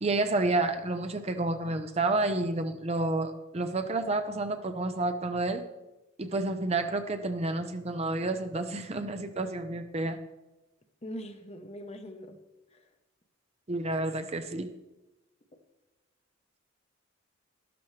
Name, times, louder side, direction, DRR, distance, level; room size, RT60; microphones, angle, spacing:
voice 1, 0.0-5.6 6.2-10.2 13.7-14.7, right 2 dB, 30° right, 8 dB, 0.6 m, -30 dB
voice 2, 11.0-12.4 12.7-12.9, equal, 30° left, 7 dB, 0.9 m, -42 dB
13.0 x 12.0 x 3.3 m, 1.0 s
head